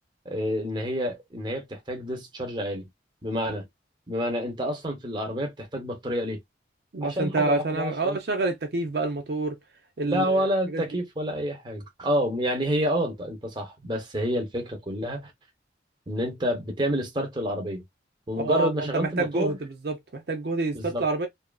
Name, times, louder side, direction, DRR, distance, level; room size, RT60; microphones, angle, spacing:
voice 1, 0.2-2.9 3.2-3.6 4.1-6.4 7.0-8.2 10.0-15.3 16.1-17.8 18.3-19.6 20.7-21.0, equal, 25° right, 0.8 m, -28 dB
voice 2, 6.9-9.5 10.0-10.4 10.7-10.8 18.3-19.6 19.8-21.3, right 3 dB, 60° right, 0.6 m, -27 dB
2.8 x 2.5 x 2.2 m
head